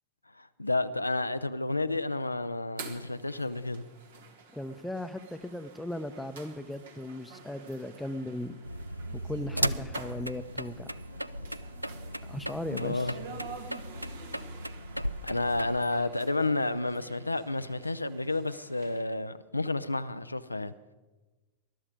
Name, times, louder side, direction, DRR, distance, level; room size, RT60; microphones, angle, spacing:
voice 1, 0.3-3.8 12.7-13.1 15.2-20.7, left 2 dB, 85° left, 0.5 m, -31 dB
sound 1, 2.8-19.0, right 4 dB, 60° right, 2.0 m, -49 dB
voice 2, 4.5-8.6 9.2-10.9 12.3-13.1, left 1 dB, 5° left, 0.8 m, -37 dB
sound 2, 8.6-15.8, equal, 90° right, 0.4 m, -36 dB
20.5 x 12.0 x 5.0 m
figure-of-eight pair, 90°, 0 cm